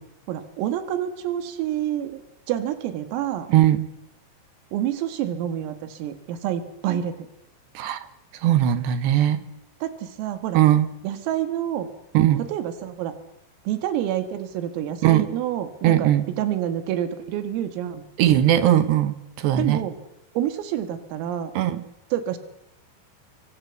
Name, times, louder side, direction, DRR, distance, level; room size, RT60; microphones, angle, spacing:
voice 1, 0.3-2.2 2.5-3.5 4.7-7.3 9.8-10.6 11.0-11.9 12.5-13.1 13.7-16.1 16.4-18.1 19.6-20.0 20.4-21.5 22.1-22.4, right 11 dB, 85° right, 10 dB, 4.4 m, -28 dB
voice 2, 3.5-3.9 7.7-8.1 8.3-9.4 10.5-10.9 12.1-12.4 15.0-15.3 15.8-16.3 18.2-19.8 21.5-21.8, right 12 dB, 70° right, 12 dB, 3.1 m, -19 dB
27.5 x 25.0 x 8.1 m, 0.82 s
omnidirectional pair, 5.9 m